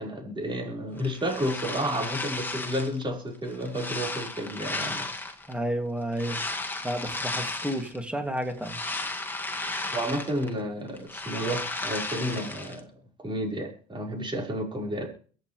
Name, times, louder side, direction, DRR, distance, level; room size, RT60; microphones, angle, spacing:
voice 1, 0.0-5.1 9.9-12.9 13.2-15.1, equal, 30° right, 1 dB, 5.5 m, -31 dB
sound 1, 1.0-3.0 3.5-5.5 6.1-8.0 8.4-10.6 10.9-12.8, left 2 dB, 10° left, 2.0 m, -34 dB
voice 2, 5.5-6.4 6.8-8.8, equal, 5° right, 4 dB, 3.0 m, -31 dB
23.5 x 8.9 x 3.5 m, 0.41 s
cardioid pair, 110°, 17 cm